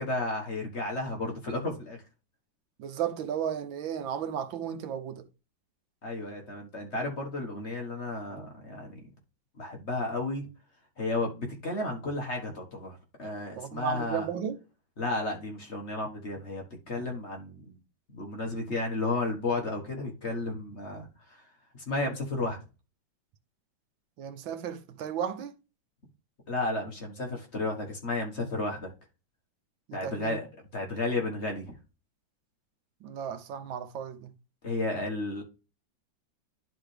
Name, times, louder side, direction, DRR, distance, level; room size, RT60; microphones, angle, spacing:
voice 1, 0.0-2.0 6.0-9.0 9.6-10.5 11.0-14.3 15.0-17.8 18.1-21.4 21.9-22.6 26.5-28.9 29.9-30.5 30.7-31.8 34.6-35.4, left 2 dB, 35° left, 1.6 m, -33 dB
voice 2, 2.8-5.3 13.6-14.6 24.2-25.5 29.9-30.4 33.0-34.3, right 8 dB, 85° right, 1.6 m, -34 dB
11.0 x 4.1 x 3.3 m
omnidirectional pair, 2.1 m